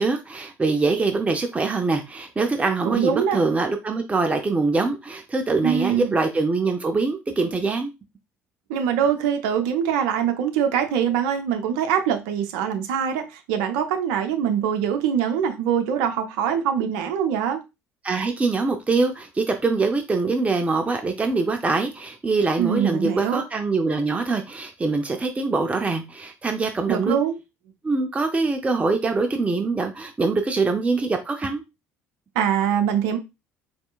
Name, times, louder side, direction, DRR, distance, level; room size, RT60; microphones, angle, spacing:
voice 1, 0.0-7.9 18.0-27.1 27.8-31.6, right 3 dB, 20° right, 0.5 m, -23 dB
voice 2, 2.8-3.4 5.6-6.1 8.7-17.6 22.6-23.4 26.9-27.4 32.3-33.2, right 8 dB, 65° right, 0.6 m, -23 dB
4.4 x 3.3 x 2.3 m
figure-of-eight pair, 60°, 7 cm